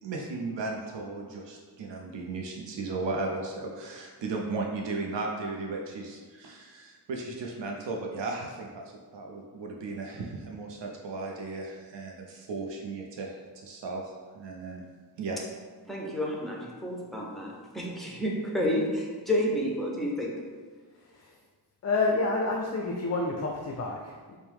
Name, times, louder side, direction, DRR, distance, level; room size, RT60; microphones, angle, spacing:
voice 1, 0.0-8.8 9.1-14.8 15.2-15.4, right 3 dB, 90° right, 0 dB, 0.5 m, -35 dB
voice 2, 15.8-20.3, equal, ahead, -3 dB, 0.7 m, -30 dB
voice 3, 20.9-21.4 21.8-24.4, left 3 dB, 40° left, 0 dB, 0.4 m, -29 dB
4.5 x 2.1 x 3.5 m, 1.5 s
wide cardioid pair, 90°, 42 cm